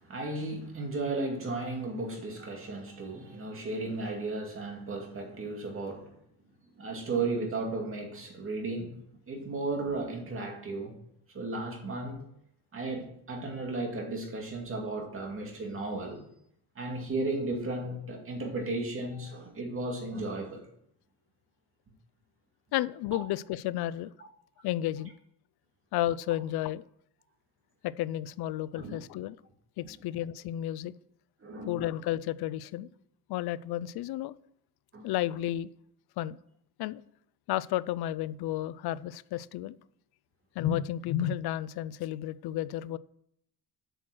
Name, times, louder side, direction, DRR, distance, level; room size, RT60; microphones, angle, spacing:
voice 1, 0.0-6.1 6.7-9.0 9.3-11.0 11.3-12.2 12.7-16.2 16.8-20.7 28.7-29.0 31.4-31.9 34.9-35.0, right 2 dB, 35° right, 2.4 m, -35 dB
voice 2, 22.7-24.1 24.6-25.1 25.9-26.8 27.8-29.4 29.8-30.9 31.7-32.9 33.3-34.3 35.0-35.7 36.2-36.4 36.8-37.0 37.5-39.8 40.6-43.0, left 13 dB, 85° left, 0.5 m, -32 dB
7.9 x 6.4 x 6.1 m
cardioid pair, 140°, 37 cm